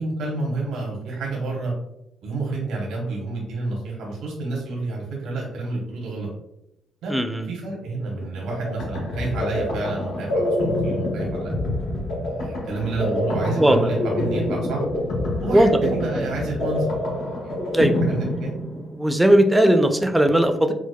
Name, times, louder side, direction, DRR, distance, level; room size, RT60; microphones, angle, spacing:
voice 1, 0.0-1.7 2.2-6.3 7.0-7.1 7.5-11.5 12.1-14.8 15.4-16.9 17.4-18.5, right 3 dB, 80° right, -2 dB, 0.8 m, -29 dB
voice 2, 7.1-7.5 13.6-13.9 15.5-15.7 16.2-16.3 17.7-18.0 19.0-20.7, right 1 dB, 5° right, 6 dB, 0.4 m, -18 dB
sound 1, 8.2-19.1, left 1 dB, 90° left, 1.2 m, -26 dB
4.6 x 2.0 x 2.2 m, 0.85 s
cardioid pair, 90°, 0 cm